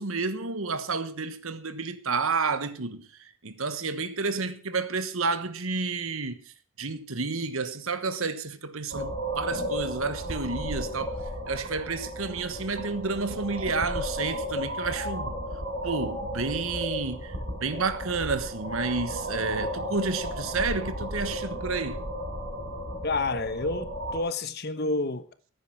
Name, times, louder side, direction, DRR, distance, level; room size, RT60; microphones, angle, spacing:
voice 1, 0.0-3.0 3.4-6.4 6.8-11.2 11.5-15.3 15.8-22.0, right 4 dB, 75° right, 1.3 m, -30 dB
sound 1, 8.9-24.2, equal, 55° right, 5.5 m, -34 dB
voice 2, 23.0-25.3, left 3 dB, 50° left, 1.2 m, -29 dB
15.5 x 9.3 x 6.1 m
head